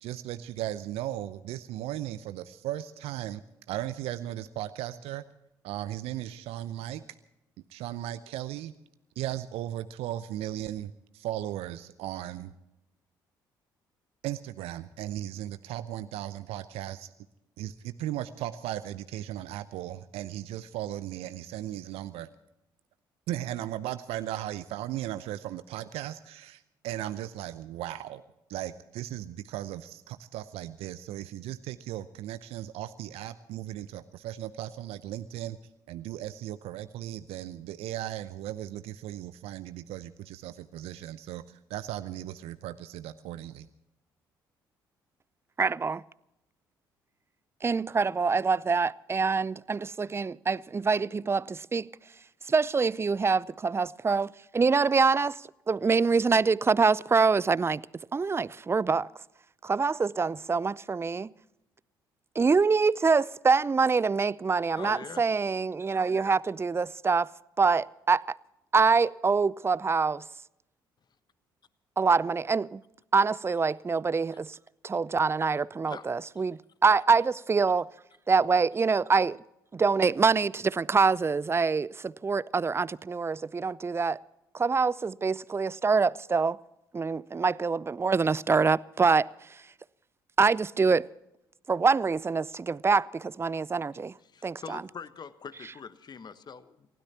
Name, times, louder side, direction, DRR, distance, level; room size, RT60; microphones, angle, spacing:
voice 1, 0.0-5.2 5.6-7.0 7.7-8.7 9.2-12.5 14.2-17.1 17.6-22.3 23.3-28.2 28.5-35.6 35.9-43.7, right 13 dB, 65° right, 0.7 m, -37 dB
voice 2, 45.6-46.0 47.6-51.9 52.5-57.8 58.1-59.1 59.6-61.3 62.4-67.3 67.6-68.4 68.7-70.2 72.0-72.8 73.1-74.6 74.8-77.9 78.3-79.4 79.7-84.2 84.5-86.6 86.9-89.3 90.4-91.1 91.7-94.2 94.4-94.8, right 4 dB, 20° right, 0.5 m, -25 dB
voice 3, 64.6-65.3 75.9-76.1 76.3-76.4 94.2-96.9, left 6 dB, 40° left, 1.3 m, -43 dB
29.0 x 16.5 x 2.9 m
hypercardioid pair, 50°, 11 cm